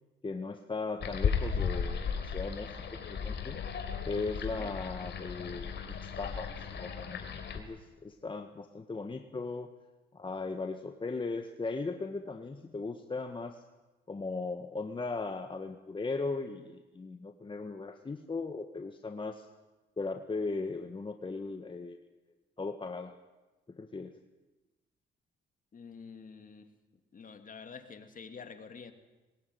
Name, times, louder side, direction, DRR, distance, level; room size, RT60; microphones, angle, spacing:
voice 1, 0.2-3.6 4.0-9.7 10.1-13.6 14.1-19.5 20.0-22.0 22.6-23.1 23.7-24.2, left 3 dB, 25° left, 6 dB, 1.4 m, -38 dB
sound 1, 1.0-7.6, left 6 dB, 60° left, 3.6 m, -35 dB
voice 2, 25.7-26.7 27.1-28.9, left 5 dB, 45° left, 7 dB, 2.7 m, -48 dB
21.5 x 19.5 x 9.2 m, 1.1 s
cardioid pair, 90°, 20 cm